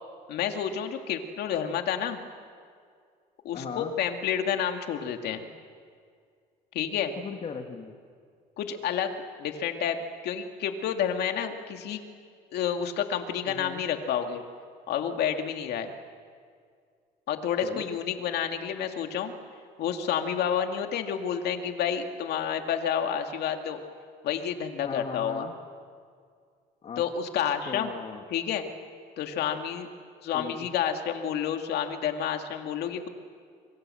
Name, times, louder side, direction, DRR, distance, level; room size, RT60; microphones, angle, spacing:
voice 1, 0.3-2.2 3.4-5.5 6.7-7.1 8.6-9.1 9.4-10.0 10.2-12.0 12.5-14.4 14.9-15.9 17.3-19.3 19.8-23.8 24.2-25.5 27.0-27.9 28.3-28.7 29.2-29.9 30.2-33.1, left 8 dB, 75° left, 5 dB, 2.4 m, -29 dB
voice 2, 3.5-3.9 7.2-8.0 13.5-13.8 17.6-17.9 24.8-25.5 26.8-27.0 27.7-28.2 30.3-30.6, left 6 dB, 40° left, 3 dB, 2.1 m, -37 dB
26.5 x 24.0 x 7.8 m, 2.1 s
cardioid pair, 110°, 17 cm